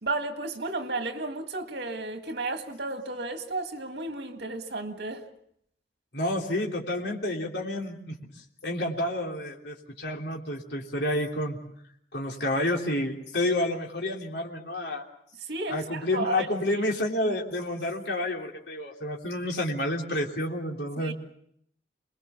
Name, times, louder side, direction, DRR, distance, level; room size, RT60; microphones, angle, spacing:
voice 1, 0.0-5.2 15.5-16.5 21.0-21.1, right 2 dB, 75° right, 1.9 m, -33 dB
voice 2, 6.1-8.1 8.6-11.6 12.1-15.0 15.7-21.1, left 1 dB, 80° left, 3.3 m, -29 dB
27.5 x 21.0 x 7.1 m
head